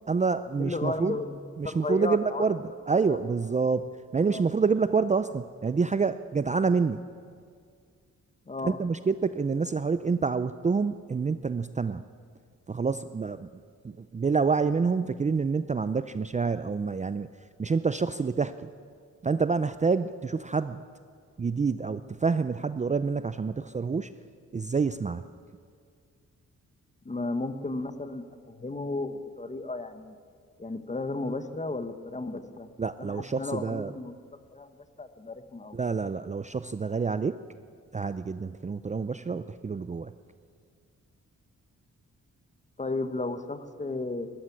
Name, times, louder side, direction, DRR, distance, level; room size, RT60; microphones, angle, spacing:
voice 1, 0.1-1.2 1.6-7.1 8.6-12.0 12.7-17.3 17.6-18.7 19.2-20.8 21.4-24.1 24.5-25.3 32.8-33.9 35.7-37.4 37.9-40.1, right 5 dB, 25° right, 13 dB, 0.5 m, -27 dB
voice 2, 0.6-2.4 3.0-3.2 4.3-4.4 8.5-8.8 27.0-30.2 30.6-32.7 33.0-34.2 34.5-35.8 42.8-44.3, left 2 dB, 25° left, 10 dB, 1.3 m, -34 dB
18.5 x 14.0 x 10.0 m, 2.1 s
cardioid pair, 90°, 30 cm